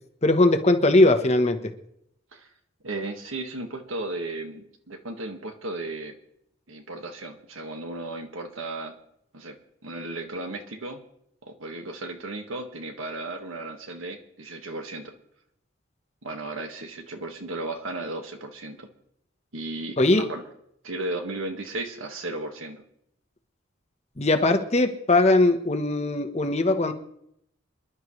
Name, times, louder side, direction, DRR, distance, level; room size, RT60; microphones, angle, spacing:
voice 1, 0.2-1.6 20.0-20.2 24.2-26.9, left 2 dB, 30° left, 6 dB, 1.1 m, -20 dB
voice 2, 2.8-6.2 6.7-8.9 9.3-9.6 9.8-11.0 11.4-15.1 16.2-18.9 19.5-20.4 20.8-22.8, right 2 dB, 80° right, 5 dB, 1.7 m, -35 dB
26.0 x 11.0 x 3.2 m, 0.73 s
head